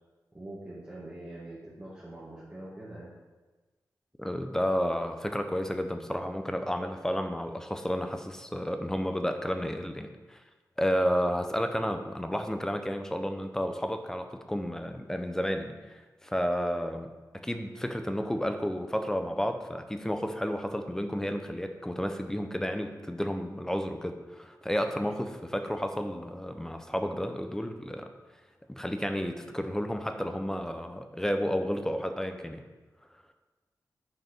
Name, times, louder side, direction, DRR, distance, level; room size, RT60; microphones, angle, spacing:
voice 1, 0.3-3.1, right 1 dB, 15° right, -9 dB, 1.6 m, -44 dB
voice 2, 4.2-10.4 10.8-28.1 28.7-32.6, equal, 10° left, 6 dB, 0.6 m, -31 dB
6.5 x 4.5 x 5.9 m, 1.2 s
wide cardioid pair, 95°, 7 cm